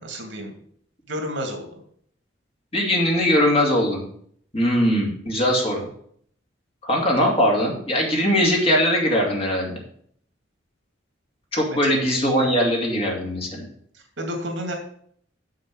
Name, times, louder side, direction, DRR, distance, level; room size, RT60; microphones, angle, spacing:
voice 1, 0.0-0.5 1.1-1.8 11.7-12.0 13.9-14.7, equal, 75° right, 3 dB, 2.3 m, -31 dB
voice 2, 2.7-4.0 4.5-5.8 6.8-9.7 11.5-13.7, equal, 30° left, -1 dB, 2.3 m, -21 dB
7.2 x 6.5 x 6.2 m, 0.62 s
head